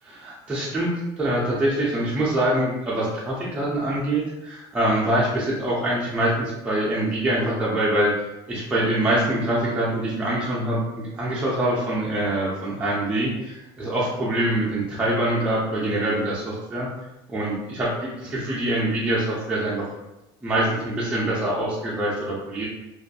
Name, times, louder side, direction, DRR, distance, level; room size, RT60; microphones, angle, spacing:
voice 1, 0.1-8.1 8.5-16.9 17.3-17.9 18.3-19.9 20.4-22.7, right 1 dB, 10° right, -7 dB, 0.5 m, -24 dB
2.5 x 2.3 x 2.5 m, 0.98 s
cardioid pair, 135°, 12 cm